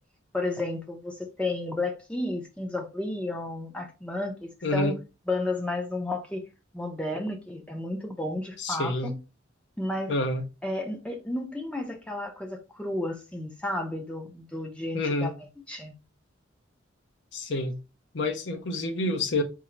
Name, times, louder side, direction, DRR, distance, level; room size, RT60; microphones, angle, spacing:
voice 1, 0.3-5.0 5.3-6.5 6.7-9.1 9.8-10.1 10.6-15.3 15.7-15.9, left 2 dB, 5° left, 0.5 m, -32 dB
voice 2, 4.6-4.9 8.6-9.1 10.1-10.5 14.9-15.3 17.3-17.8 18.1-19.4, left 2 dB, 65° left, 0.7 m, -28 dB
3.7 x 2.0 x 4.3 m
head